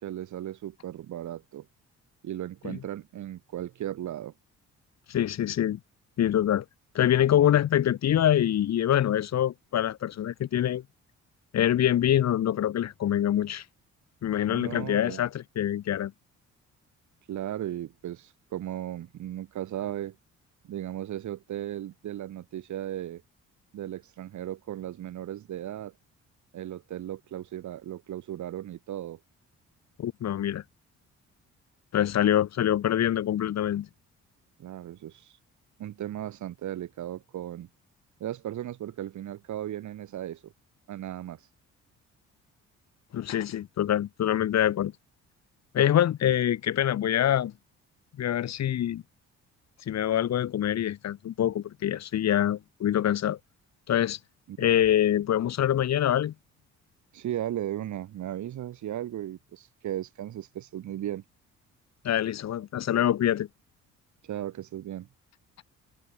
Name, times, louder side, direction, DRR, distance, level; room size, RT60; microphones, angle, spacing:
voice 1, 0.0-1.7 2.2-4.3 14.5-15.2 17.3-20.2 20.6-23.2 23.7-25.9 26.5-29.2 34.6-35.4 35.8-37.7 38.2-40.5 40.9-41.5 54.5-54.7 57.1-61.2 64.2-65.1, right 12 dB, 70° right, 3.5 m, -36 dB
voice 2, 5.1-5.8 6.2-6.6 6.9-10.8 11.5-13.6 14.2-16.1 30.0-30.6 31.9-33.9 43.1-44.9 45.7-47.5 48.2-49.0 49.9-53.4 53.9-54.2 54.6-56.3 62.0-63.5, left 11 dB, 60° left, 1.4 m, -25 dB
cardioid pair, 90°, 30 cm